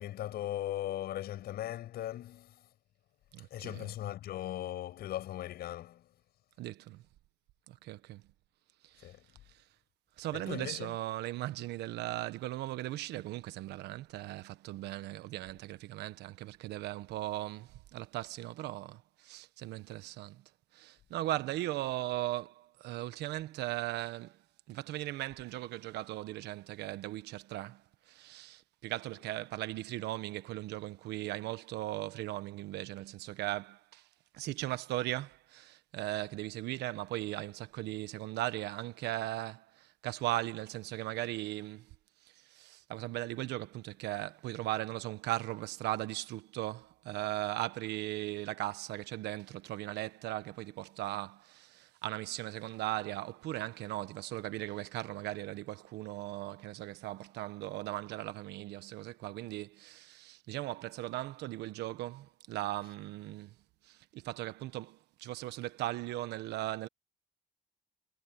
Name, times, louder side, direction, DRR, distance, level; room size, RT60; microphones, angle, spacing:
voice 1, 0.0-2.7 3.4-6.1 9.0-9.3 10.3-11.0, left 13 dB, 70° left, 7.0 m, -39 dB
voice 2, 3.3-3.9 6.6-7.0 7.7-8.2 8.8-9.1 9.5-9.6 10.2-20.4 20.7-24.4 24.7-34.1 34.3-41.9 42.3-63.5 63.8-66.9, right 16 dB, 80° right, 1.3 m, -38 dB
cardioid pair, 110°, 17 cm